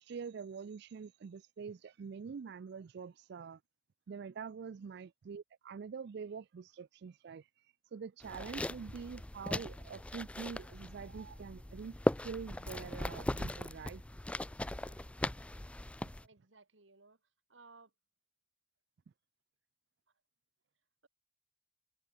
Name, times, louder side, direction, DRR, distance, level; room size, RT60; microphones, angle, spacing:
voice 1, 0.0-3.6 4.1-12.0 12.2-14.0, right 6 dB, 60° right, 0.4 m, -45 dB
sound 1, 8.2-16.2, left 1 dB, 5° left, 0.4 m, -39 dB
voice 2, 14.6-15.0 16.2-17.2 17.5-17.9, right 3 dB, 75° right, 2.5 m, -60 dB
head